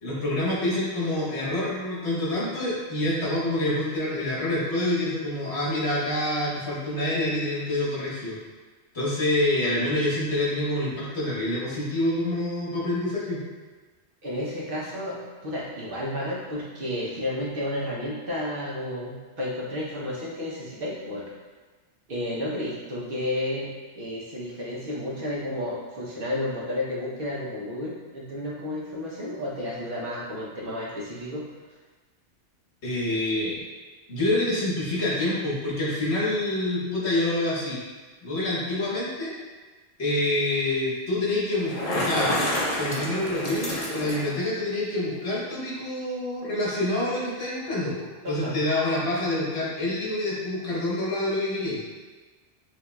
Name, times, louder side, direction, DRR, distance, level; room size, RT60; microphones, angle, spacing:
voice 1, 0.0-8.4 8.9-13.4 32.8-33.6 34.1-37.8 38.2-39.3 40.0-42.3 42.8-51.8, left 1 dB, 65° left, -6 dB, 1.4 m, -27 dB
voice 2, 14.2-21.2 22.1-31.4 48.2-48.6, left 1 dB, 55° right, -6 dB, 0.9 m, -32 dB
Bicycle, 41.5-44.4, left 1 dB, 40° left, 0.6 m, -28 dB
5.7 x 2.7 x 2.2 m, 1.3 s
omnidirectional pair, 1.2 m